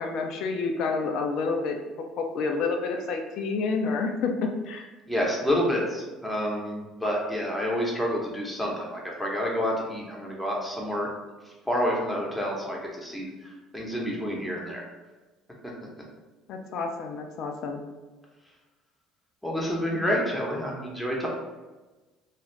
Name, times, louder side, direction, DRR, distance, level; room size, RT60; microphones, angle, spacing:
voice 1, 0.0-1.8 2.2-4.9 16.5-17.8 19.9-20.1, left 4 dB, 65° left, 3 dB, 0.4 m, -29 dB
voice 2, 5.1-11.1 11.6-14.8 19.4-21.3, equal, 5° left, -3 dB, 0.9 m, -28 dB
2.5 x 2.4 x 3.1 m, 1.2 s
supercardioid pair, 80°, 0 cm